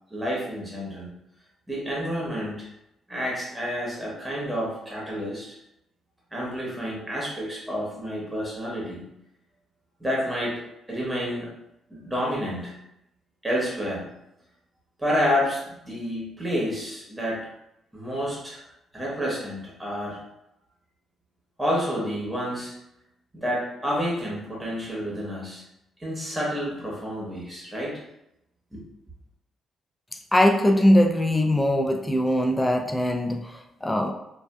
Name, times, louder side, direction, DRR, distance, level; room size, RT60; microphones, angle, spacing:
voice 1, 0.1-1.1 1.7-2.7 3.1-5.6 6.3-9.0 10.0-10.6 10.9-11.5 11.9-12.7 13.4-14.1 15.0-17.5 17.9-18.6 18.9-20.2 21.6-22.7 23.3-25.6 26.0-28.0 28.7-28.8, equal, 10° right, -4 dB, 0.9 m, -29 dB
voice 2, 30.3-34.1, left 1 dB, 15° left, 4 dB, 0.3 m, -21 dB
2.6 x 2.2 x 2.2 m, 0.84 s
cardioid pair, 90°, 0 cm